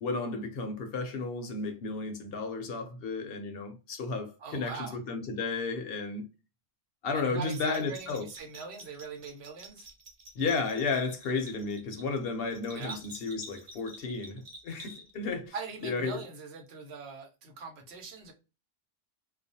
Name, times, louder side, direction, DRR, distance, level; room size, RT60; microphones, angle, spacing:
voice 1, 0.0-6.2 7.0-8.3 10.4-15.5 15.8-16.2, left 4 dB, 70° left, 0.7 m, -33 dB
voice 2, 4.4-5.0 7.1-9.9 12.7-13.0 15.5-18.3, right 5 dB, 75° right, 0.9 m, -42 dB
Bell, 7.4-15.3, right 1 dB, 45° right, 0.6 m, -49 dB
2.3 x 2.0 x 2.6 m
omnidirectional pair, 1.1 m